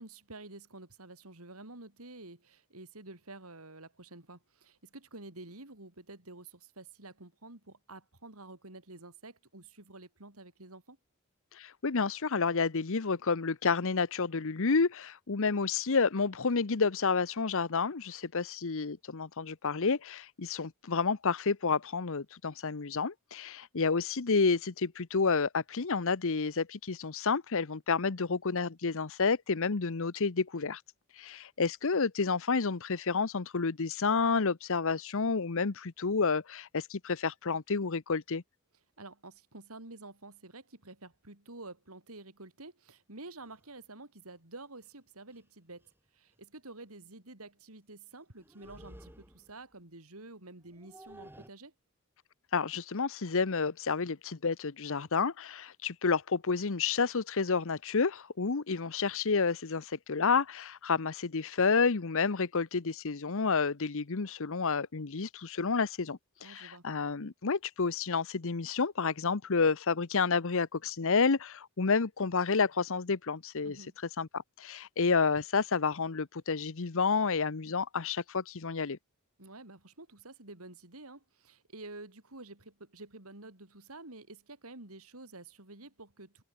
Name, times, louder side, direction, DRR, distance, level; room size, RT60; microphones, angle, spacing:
voice 1, 0.0-11.0 39.0-51.7 66.4-66.9 73.6-74.0 79.4-86.4, right 2 dB, 80° right, 4.4 m, -49 dB
voice 2, 11.5-30.8 31.2-38.4 52.5-73.8 74.2-79.0, left 4 dB, 65° left, 0.9 m, -30 dB
sound 1, 43.4-43.6 44.8-44.9 45.3-45.5 45.8-46.0 48.4-49.6 50.6-51.5, right 1 dB, 10° right, 7.4 m, -53 dB
head